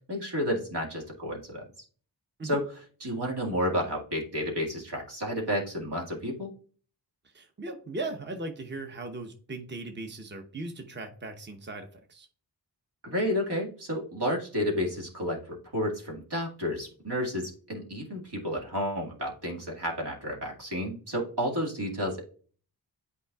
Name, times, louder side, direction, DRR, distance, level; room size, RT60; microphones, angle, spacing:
voice 1, 0.1-1.6 2.4-2.6 3.0-6.5 13.0-22.2, equal, 70° right, -2 dB, 2.0 m, -31 dB
voice 2, 7.3-12.3, right 2 dB, 25° right, 5 dB, 0.9 m, -38 dB
8.4 x 4.8 x 2.3 m, 0.43 s
cardioid pair, 45°, 41 cm